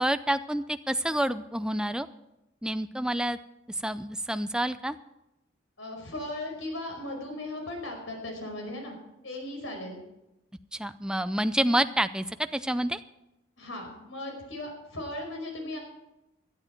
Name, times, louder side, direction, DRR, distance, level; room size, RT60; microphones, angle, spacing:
voice 1, 0.0-2.1 2.6-3.4 3.7-5.0 10.7-13.0, right 1 dB, 5° right, 11 dB, 0.4 m, -28 dB
voice 2, 5.8-9.0 9.2-10.0 13.6-15.8, left 1 dB, 90° left, 2 dB, 5.1 m, -37 dB
17.5 x 11.5 x 4.5 m, 0.92 s
head